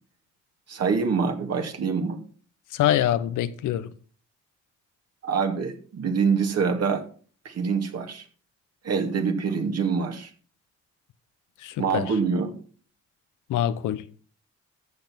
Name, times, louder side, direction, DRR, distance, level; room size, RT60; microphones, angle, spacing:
voice 1, 0.7-2.2 5.2-7.0 7.4-8.2 8.8-10.3 11.8-12.5, right 5 dB, 55° right, 2.6 m, -25 dB
voice 2, 2.7-3.9 11.6-12.0 13.5-14.0, left 11 dB, 85° left, 1.0 m, -24 dB
14.0 x 6.9 x 5.9 m
cardioid pair, 90°, 30 cm